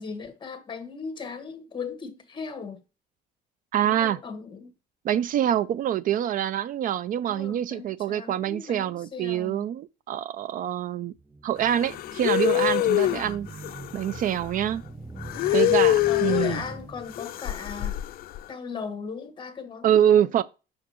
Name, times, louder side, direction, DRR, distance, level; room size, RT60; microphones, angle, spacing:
voice 1, 0.0-2.8 3.8-4.7 7.2-9.6 12.8-13.3 15.5-15.7 16.1-18.0 18.5-20.4, left 5 dB, 30° left, 1.4 m, -38 dB
voice 2, 3.7-4.2 5.0-11.1 11.4-13.5 13.9-14.8 15.5-16.6 19.8-20.4, right 10 dB, 55° right, 0.4 m, -25 dB
sound 1, 11.2-17.5, right 3 dB, 10° right, 0.6 m, -42 dB
sound 2, 11.7-14.4 15.2-16.7 17.1-18.4, left 14 dB, 60° left, 0.4 m, -25 dB
6.4 x 6.0 x 3.0 m
cardioid pair, 110°, 17 cm